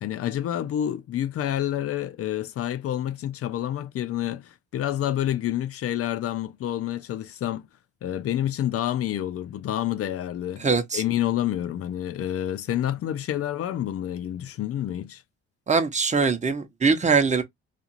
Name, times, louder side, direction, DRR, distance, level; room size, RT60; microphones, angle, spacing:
voice 1, 0.0-7.7 8.0-10.6 10.9-15.2, left 11 dB, 50° left, 0.4 m, -28 dB
voice 2, 10.6-11.0 15.7-17.4, right 5 dB, 25° right, 0.8 m, -22 dB
2.5 x 2.3 x 2.7 m
cardioid pair, 90°, 30 cm